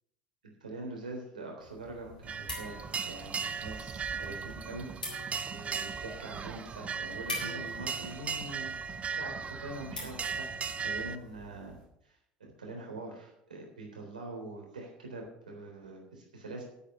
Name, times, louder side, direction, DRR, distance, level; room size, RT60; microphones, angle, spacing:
voice 1, 0.6-10.5 10.8-11.8 12.0-12.2 12.6-16.6, right 2 dB, 80° right, 1 dB, 3.6 m, -44 dB
sound 1, 1.6-11.9, left 1 dB, 90° left, 4.0 m, -46 dB
sound 2, 2.2-11.2, right 6 dB, 30° right, 0.8 m, -37 dB
8.8 x 8.7 x 8.3 m, 0.82 s
figure-of-eight pair, 70°, 4 cm